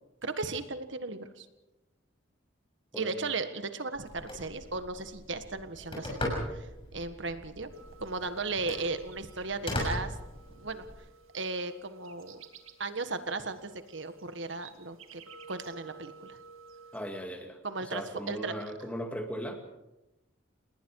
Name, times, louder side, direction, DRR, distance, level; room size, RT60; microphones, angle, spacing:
voice 1, 0.2-1.5 2.9-7.7 8.0-10.2 10.5-10.8 11.3-12.4 12.8-15.2 15.5-16.4 17.6-18.0 18.3-18.5, right 3 dB, 65° right, 10 dB, 1.6 m, -36 dB
voice 2, 2.9-3.3 16.9-19.6, equal, 5° left, 4 dB, 2.2 m, -38 dB
Telephone, 3.9-10.9, left 1 dB, 25° left, 6.4 m, -39 dB
sound 1, 7.7-17.2, right 5 dB, 90° right, 2.2 m, -53 dB
29.0 x 19.5 x 4.8 m, 0.96 s
head